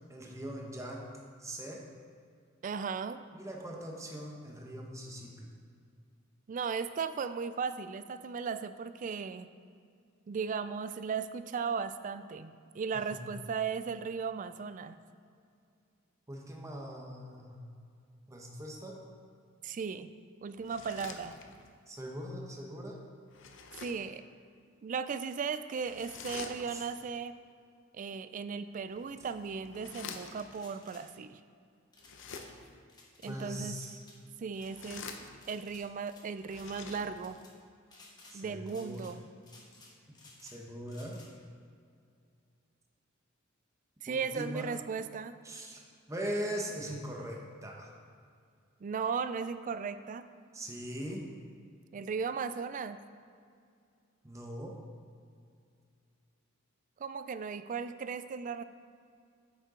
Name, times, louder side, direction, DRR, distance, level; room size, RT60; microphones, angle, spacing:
voice 1, 0.1-1.1 1.4-1.8 3.3-5.5 12.9-13.3 16.3-17.6 18.3-19.0 21.9-23.0 26.7-26.9 33.3-34.0 38.3-39.1 40.4-41.2 44.1-44.7 45.4-45.8 46.1-47.9 50.5-51.3 54.2-54.7, equal, 15° right, -1 dB, 0.9 m, -41 dB
voice 2, 2.6-3.2 6.5-9.5 10.3-15.0 19.6-20.1 20.4-21.4 23.8-24.2 24.8-27.4 27.9-31.4 33.2-33.8 34.4-35.1 35.5-37.4 38.3-39.2 44.0-45.4 48.8-50.3 51.9-53.0 57.0-58.6, right 5 dB, 40° right, 12 dB, 0.3 m, -36 dB
sound 1, 20.5-21.8 23.3-24.1 25.8-27.0 28.8-30.6 32.0-32.8 34.4-35.7 36.4-37.4, left 5 dB, 65° left, 0.7 m, -48 dB
sound 2, 30.5-31.0 31.9-32.5 32.9-33.3 33.7-34.2 34.5-35.1 35.4-36.2 36.5-36.7 37.2-37.5 37.9-38.4 38.7-39.1 39.4-40.6 40.9-41.3, left 3 dB, 20° left, 1.2 m, -57 dB
8.9 x 6.5 x 3.7 m, 2.3 s
head